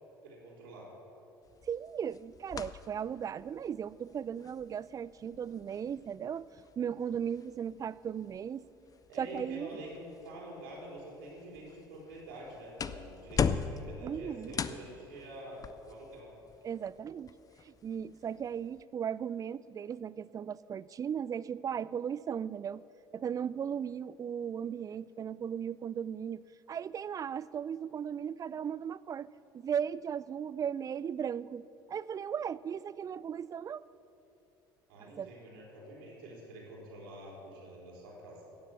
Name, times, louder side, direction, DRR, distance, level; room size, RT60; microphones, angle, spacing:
voice 1, 0.2-0.9 9.1-16.3 34.9-38.4, right 1 dB, 75° right, -3 dB, 3.8 m, -47 dB
sound 1, 1.4-18.8, left 6 dB, 30° left, 0.6 m, -41 dB
voice 2, 1.7-6.4 6.8-8.6 9.2-9.8 14.0-14.6 16.6-17.3 17.6-22.8 23.1-26.4 26.7-29.3 29.5-33.8 35.2-35.3, right 8 dB, 30° right, 19 dB, 0.4 m, -37 dB
16.5 x 7.4 x 7.3 m, 2.9 s
figure-of-eight pair, 60°, 12 cm